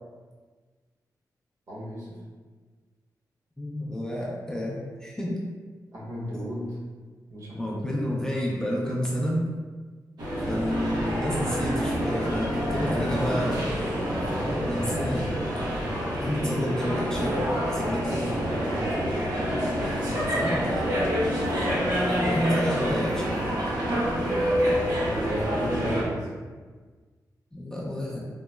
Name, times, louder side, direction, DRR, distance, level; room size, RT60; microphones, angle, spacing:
voice 1, 1.7-2.2 5.9-6.8 7.3-8.3 12.7-13.4 16.4-16.6 18.0-19.1 24.4-26.3, equal, 55° right, -6 dB, 0.9 m, -35 dB
voice 2, 3.6-5.4 7.6-9.5 10.5-13.6 14.6-15.3 16.2-17.4 17.6-18.4 20.0-20.9 22.2-23.6 27.5-28.2, equal, 10° left, -5 dB, 0.4 m, -30 dB
sound 1, 10.2-26.0, equal, 80° right, 0.7 m, -27 dB
3.7 x 2.0 x 2.2 m, 1.4 s
wide cardioid pair, 160°, 7 cm